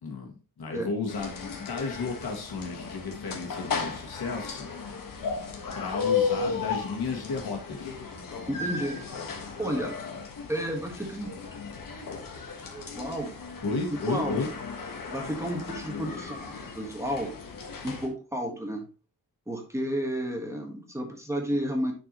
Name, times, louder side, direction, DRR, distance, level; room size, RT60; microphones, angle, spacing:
voice 1, 0.0-4.7 5.7-7.9 13.6-14.5, left 4 dB, 85° left, 2 dB, 2.0 m, -33 dB
sound 1, 1.1-18.1, left 5 dB, 65° left, 1.5 m, -35 dB
voice 2, 8.5-9.0 9.6-10.0 10.5-11.5 12.7-13.3 13.7-13.8 14.1-14.5 15.1-17.3 17.8-18.8 19.5-21.9, equal, 10° right, 1 dB, 1.4 m, -32 dB
9.8 x 4.6 x 3.0 m, 0.35 s
wide cardioid pair, 155°, 36 cm